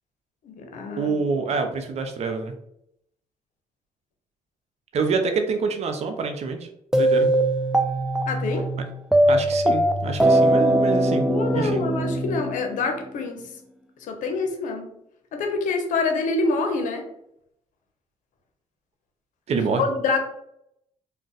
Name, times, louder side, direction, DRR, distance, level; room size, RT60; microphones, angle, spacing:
voice 1, 0.4-1.2 8.3-8.7 11.3-13.5 14.0-14.9 15.3-17.1 19.8-20.2, left 3 dB, 70° left, 5 dB, 0.6 m, -26 dB
voice 2, 1.0-2.6 4.9-6.7 7.0-7.3 9.3-11.3 11.5-11.8 19.5-19.8, right 4 dB, 55° right, 6 dB, 0.5 m, -26 dB
sound 1, 6.9-13.1, right 1 dB, 5° right, 0.3 m, -21 dB
2.4 x 2.2 x 3.9 m, 0.77 s
supercardioid pair, 70°, 14 cm